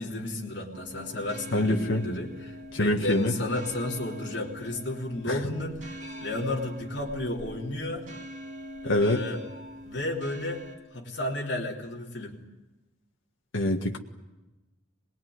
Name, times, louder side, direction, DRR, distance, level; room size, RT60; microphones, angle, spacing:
voice 1, 0.0-8.1 8.8-9.4 9.9-10.6 10.9-12.4, left 1 dB, 60° left, -2 dB, 3.5 m, -33 dB
sound 1, 0.7-10.8, equal, 40° right, 5.7 m, -43 dB
voice 2, 1.5-2.1 2.7-3.3 5.3-5.4 8.9-9.2 13.5-14.0, left 1 dB, 85° left, 2 dB, 1.7 m, -25 dB
24.5 x 20.5 x 9.6 m, 1.1 s
head